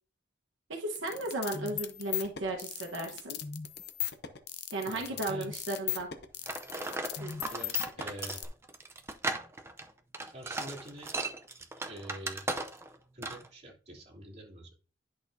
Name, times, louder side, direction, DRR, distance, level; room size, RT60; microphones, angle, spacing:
voice 1, 0.7-3.4 4.7-6.1 7.2-7.5, right 2 dB, 85° right, 0 dB, 1.2 m, -35 dB
sound 1, 1.0-8.5, left 10 dB, 60° left, 0.8 m, -37 dB
voice 2, 4.8-5.5 7.5-8.4 10.2-11.1 11.9-12.6 13.1-14.7, right 1 dB, 35° right, -4 dB, 2.9 m, -46 dB
sound 2, 6.4-12.9 13.2-13.5, right 2 dB, 15° right, 0.6 m, -37 dB
10.5 x 6.2 x 2.7 m, 0.38 s
head